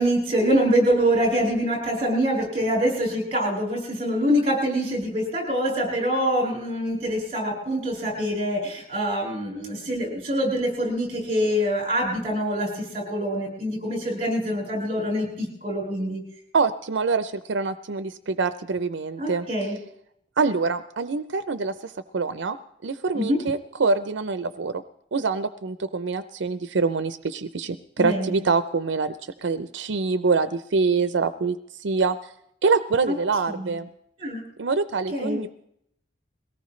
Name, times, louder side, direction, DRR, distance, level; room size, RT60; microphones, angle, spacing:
voice 1, 0.0-16.2 19.2-19.7 23.1-23.4 28.0-28.4 33.1-33.2 33.5-33.7 34.2-34.4 35.1-35.4, equal, 30° right, -3 dB, 7.7 m, -25 dB
voice 2, 16.5-19.5 20.4-22.6 22.8-24.8 25.1-32.2 32.6-33.9 34.6-35.5, right 4 dB, 80° right, 11 dB, 0.5 m, -25 dB
22.0 x 18.0 x 3.2 m, 0.74 s
head